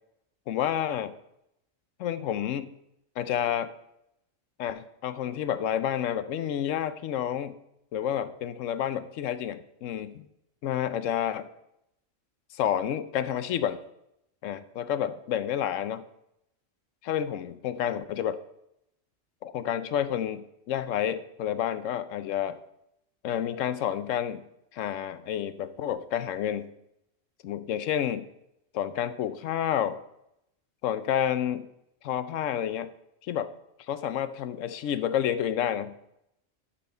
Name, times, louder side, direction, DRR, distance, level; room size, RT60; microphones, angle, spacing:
voice 1, 0.5-1.1 2.0-2.7 3.2-3.7 4.6-7.6 7.9-10.3 10.6-11.5 12.5-13.8 14.4-16.0 17.0-18.4 19.4-22.6 23.2-24.4 24.7-26.7 27.4-28.2 28.7-30.0 30.8-31.6 32.0-32.9 33.3-33.5 33.9-35.9, left 10 dB, 75° left, 13 dB, 1.0 m, -29 dB
12.0 x 4.3 x 5.4 m, 0.80 s
omnidirectional pair, 1.3 m